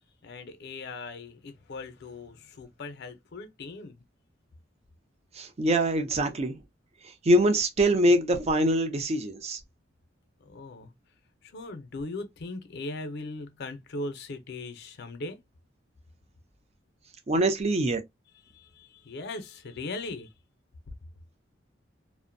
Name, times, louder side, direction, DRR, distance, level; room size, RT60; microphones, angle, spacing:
voice 1, 0.2-4.0 10.4-10.9 11.4-15.4 18.5-20.3, left 2 dB, 60° left, 0.5 m, -39 dB
voice 2, 5.4-6.5 7.2-9.6 17.3-18.0, right 1 dB, 35° right, 0.5 m, -24 dB
2.5 x 2.1 x 2.5 m
head